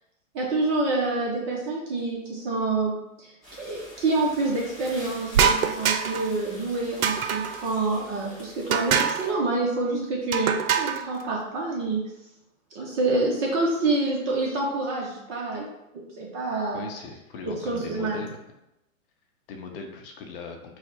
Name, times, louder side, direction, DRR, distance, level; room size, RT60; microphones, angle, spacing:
voice 1, 0.3-2.9 3.2-3.3 3.6-12.0 12.7-15.7 16.2-16.9 17.5-18.2, right 2 dB, 20° right, -2 dB, 0.5 m, -27 dB
sound 1, 3.4-9.3, equal, ahead, 1.1 m, -46 dB
sound 2, 5.3-6.3 7.0-7.6 8.7-9.3 10.3-11.1, right 7 dB, 80° right, 0.5 m, -24 dB
voice 2, 16.7-18.4 19.5-20.6, left 4 dB, 45° left, 3 dB, 0.7 m, -39 dB
4.6 x 2.1 x 4.4 m, 0.91 s
hypercardioid pair, 130°, 41 cm